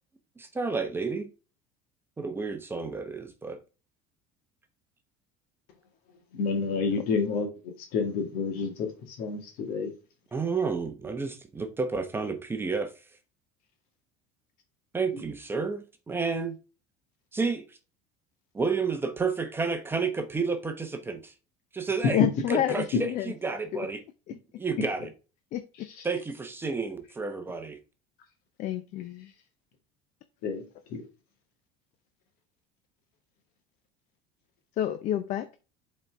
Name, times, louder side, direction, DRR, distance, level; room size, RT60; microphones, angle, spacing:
voice 1, 0.4-1.3 2.2-3.6 10.3-12.9 14.9-16.6 17.3-17.8 18.5-21.3 21.7-22.2 22.5-24.0 24.6-25.1 26.0-27.8, right 4 dB, 15° right, 0.9 m, -31 dB
voice 2, 6.3-9.9 22.2-22.3 25.7-26.1 30.4-30.6 30.9-31.0, left 4 dB, 65° left, 2.0 m, -29 dB
voice 3, 22.0-23.3 23.7-23.9 25.5-25.6 28.6-29.3 34.8-35.5, left 12 dB, 50° left, 0.6 m, -28 dB
7.4 x 4.2 x 3.5 m
cardioid pair, 130°, 16 cm